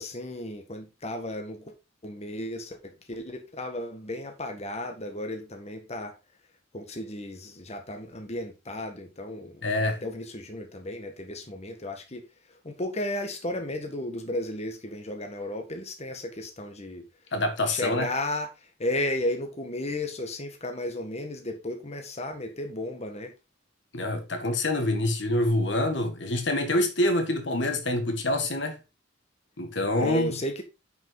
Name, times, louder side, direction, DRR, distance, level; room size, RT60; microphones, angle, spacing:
voice 1, 0.0-1.7 2.0-6.1 6.7-12.2 12.6-17.0 17.7-23.3 30.0-30.6, left 1 dB, 35° left, 1.5 m, -34 dB
voice 2, 9.6-10.0 17.3-18.1 23.9-28.8 29.6-30.3, left 1 dB, 65° left, 1.6 m, -26 dB
10.5 x 5.6 x 3.8 m
head